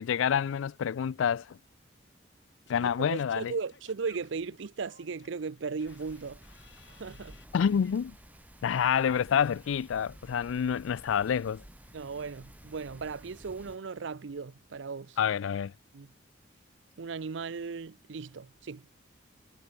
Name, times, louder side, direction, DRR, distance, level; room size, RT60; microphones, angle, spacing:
voice 1, 0.0-1.6 2.7-3.5 7.5-8.1 8.6-11.6 15.2-15.7, left 7 dB, 80° left, 0.4 m, -28 dB
Singing / Scratching (performance technique), 2.7-8.0, left 6 dB, 65° left, 5.0 m, -59 dB
voice 2, 2.8-6.4 7.0-7.4 11.9-15.2 15.9-16.1 17.0-18.9, right 5 dB, 70° right, 0.5 m, -37 dB
sound 1, 5.9-13.8, right 1 dB, 10° right, 1.1 m, -53 dB
head